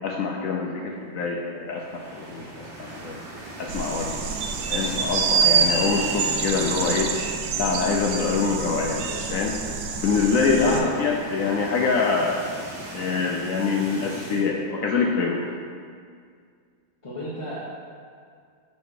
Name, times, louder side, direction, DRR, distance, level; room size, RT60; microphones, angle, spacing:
voice 1, 0.0-3.2 3.6-4.2 4.7-7.2 7.6-9.0 9.3-9.6 10.0-12.5 12.9-15.4, left 4 dB, 80° left, 0 dB, 0.7 m, -25 dB
sound 1, 1.7-7.5 7.8-8.0 8.3-8.4 9.4-14.5, right 1 dB, 85° right, 2.2 m, -40 dB
sound 2, 3.7-10.8, right 5 dB, 65° right, 1.0 m, -26 dB
voice 2, 10.5-10.9 17.0-17.7, equal, 25° left, -7 dB, 0.6 m, -33 dB
9.5 x 4.1 x 4.9 m, 2.1 s
omnidirectional pair, 2.1 m